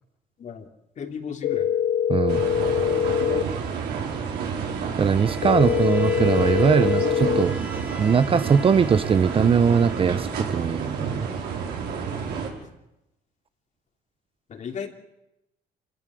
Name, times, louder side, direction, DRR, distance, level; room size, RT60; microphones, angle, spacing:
voice 1, 1.0-1.7 14.5-14.9, left 7 dB, 45° left, 5 dB, 3.1 m, -34 dB
sound 1, 1.4-3.4 5.4-7.4, left 9 dB, 75° left, 2.2 m, -23 dB
voice 2, 2.1-2.4 5.0-7.6 8.0-11.3, right 6 dB, 35° right, 14 dB, 0.8 m, -21 dB
sound 2, 2.3-12.5, right 6 dB, 80° right, 5.4 m, -30 dB
Bowed string instrument, 5.0-10.6, right 3 dB, 10° right, 1.8 m, -41 dB
27.0 x 16.5 x 7.8 m, 0.89 s
cardioid pair, 110°, 17 cm